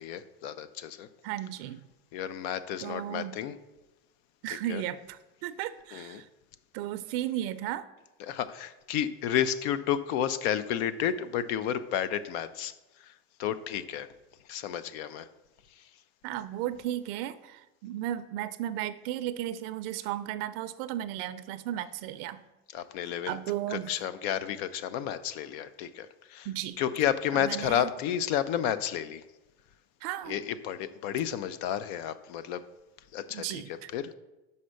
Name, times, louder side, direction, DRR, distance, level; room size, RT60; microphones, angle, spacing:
voice 1, 0.0-1.1 2.1-3.5 4.7-4.8 5.9-6.2 8.2-12.7 13.4-14.1 14.5-15.3 22.7-23.4 23.7-26.5 26.8-29.2 30.3-32.6 33.1-33.6 33.9-34.1, left 10 dB, 70° left, 14 dB, 0.6 m, -31 dB
voice 2, 1.2-1.8 2.8-3.4 4.4-6.3 6.7-7.9 16.2-22.4 23.0-23.9 26.5-26.8 27.3-27.9 30.0-30.4 33.3-33.9, right 12 dB, 65° right, 12 dB, 0.5 m, -35 dB
5.7 x 5.4 x 6.3 m, 1.1 s
supercardioid pair, 140°, 32 cm